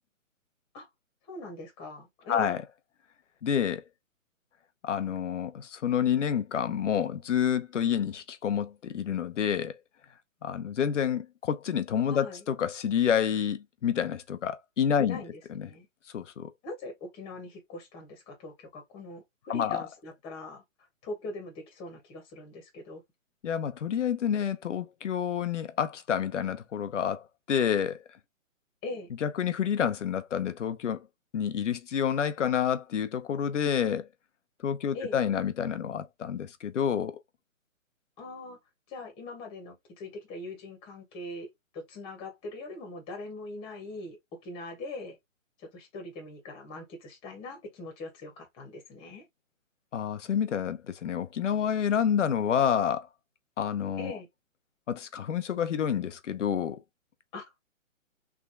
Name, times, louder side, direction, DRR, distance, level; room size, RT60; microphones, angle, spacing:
voice 1, 1.3-2.6 12.1-12.4 15.0-15.3 15.5-15.9 16.6-20.6 21.0-23.0 28.8-29.1 34.9-35.2 38.2-38.6 38.9-45.2 45.6-49.3 54.0-54.3 57.3-57.4, left 2 dB, 15° left, 1.4 m, -41 dB
voice 2, 3.4-3.8 4.8-9.8 10.4-15.2 15.5-15.7 16.1-16.5 19.5-19.9 23.4-28.0 29.2-31.1 31.3-34.1 34.6-37.2 49.9-53.1 53.6-54.2 54.9-56.8, left 8 dB, 65° left, 0.8 m, -28 dB
3.7 x 3.5 x 2.2 m
hypercardioid pair, 155°, 40 cm